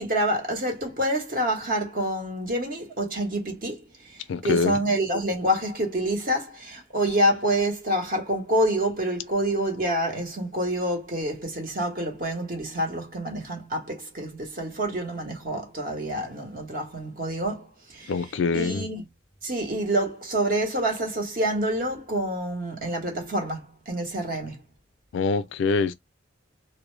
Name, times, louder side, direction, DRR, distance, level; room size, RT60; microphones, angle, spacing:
voice 1, 0.0-18.1 18.5-19.0 19.4-24.6, right 1 dB, 45° right, 0.9 m, -27 dB
voice 2, 4.3-4.8 18.1-18.9 25.1-25.9, left 4 dB, 75° left, 0.3 m, -24 dB
2.0 x 2.0 x 3.0 m
head